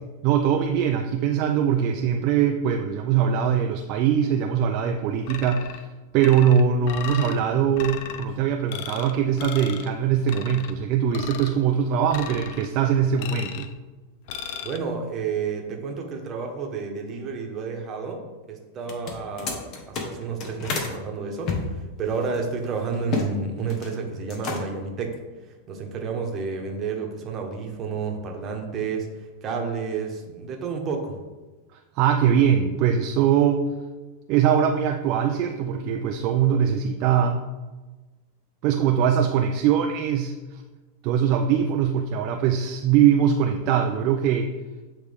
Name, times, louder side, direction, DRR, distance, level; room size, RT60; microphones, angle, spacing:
voice 1, 0.2-5.9 6.1-13.7 32.0-33.7 34.3-37.5 38.6-40.6 41.0-44.5, right 8 dB, 50° right, 4 dB, 0.4 m, -22 dB
sound 1, 5.3-5.8 6.2-7.4 7.8-8.2 8.7-9.1 9.4-9.9 10.3-10.7 11.1-11.6 12.1-12.7 13.2-13.7 14.3-14.8, left 9 dB, 60° left, 0.5 m, -36 dB
voice 2, 14.6-25.2 25.7-31.2, right 5 dB, 30° right, 2 dB, 1.1 m, -30 dB
sound 2, 18.8-20.9 21.4-23.3 23.6-24.0 24.3-24.9, left 4 dB, 40° left, 1.1 m, -31 dB
8.1 x 3.3 x 3.5 m, 1.2 s
supercardioid pair, 130°, 0 cm